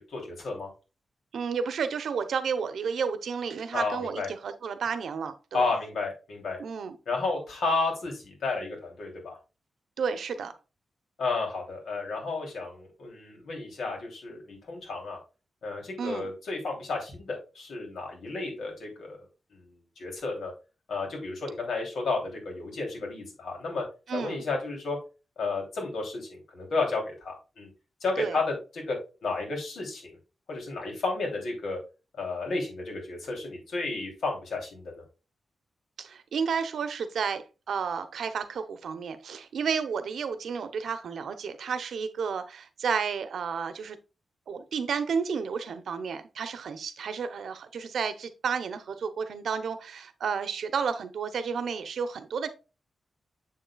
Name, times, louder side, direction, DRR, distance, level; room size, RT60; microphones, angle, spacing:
voice 1, 0.1-0.7 3.7-4.3 5.5-6.6 7.1-9.4 11.2-15.2 15.6-19.2 19.5-19.6 20.0-20.5 20.9-23.8 24.1-25.0 25.4-27.7 28.0-29.0 29.2-30.2 30.5-31.8 32.2-35.0, left 3 dB, 80° left, 0 dB, 3.0 m, -32 dB
voice 2, 1.3-5.6 6.6-7.0 10.0-10.5 16.0-16.3 24.1-24.4 28.2-28.4 36.0-44.0 44.5-52.5, right 6 dB, 85° right, 11 dB, 0.7 m, -31 dB
7.4 x 6.5 x 2.3 m, 0.31 s
wide cardioid pair, 165°, 0 cm